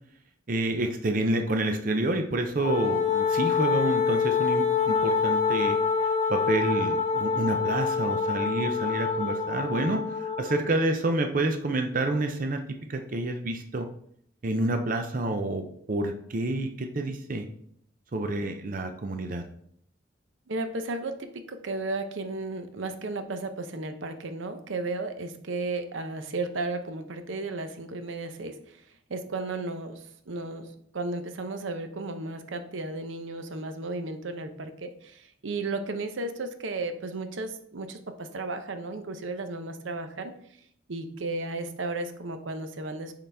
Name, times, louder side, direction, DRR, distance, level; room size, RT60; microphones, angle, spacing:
voice 1, 0.5-5.8 6.3-12.6 12.9-13.9 14.4-15.6 15.9-17.5 18.1-19.4, right 2 dB, 45° right, 5 dB, 0.5 m, -28 dB
Wind instrument woodwind instrument, 2.6-10.6, left 5 dB, 35° left, 1.0 m, -26 dB
voice 2, 20.5-28.8 29.1-30.7 30.9-40.3 40.9-43.1, right 2 dB, 80° right, 8 dB, 0.7 m, -34 dB
8.5 x 3.8 x 3.4 m, 0.67 s
head